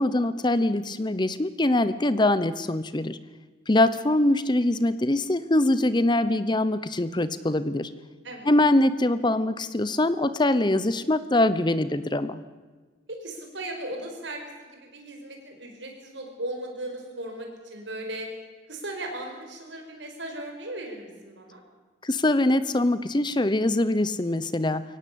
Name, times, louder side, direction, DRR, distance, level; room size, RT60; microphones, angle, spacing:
voice 1, 0.0-3.2 3.7-7.9 8.4-12.4 22.0-24.8, left 1 dB, 25° left, 14 dB, 0.7 m, -23 dB
voice 2, 13.1-18.3 18.7-21.6, right 1 dB, 65° right, 3 dB, 5.2 m, -37 dB
23.0 x 18.0 x 8.6 m, 1.4 s
head